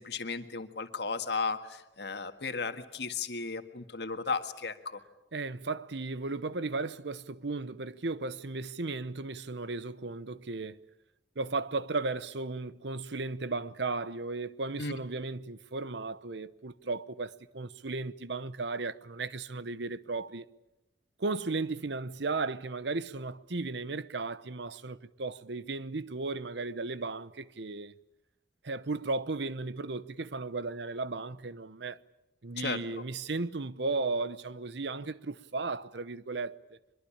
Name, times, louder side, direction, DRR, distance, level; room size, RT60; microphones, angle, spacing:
voice 1, 0.0-5.0 14.8-15.0 32.6-33.0, left 4 dB, 65° left, 1.7 m, -35 dB
voice 2, 5.3-10.8 11.4-20.5 21.2-27.9 28.6-32.0 32.4-36.6, right 3 dB, 70° right, 0.9 m, -35 dB
23.5 x 22.0 x 8.7 m
head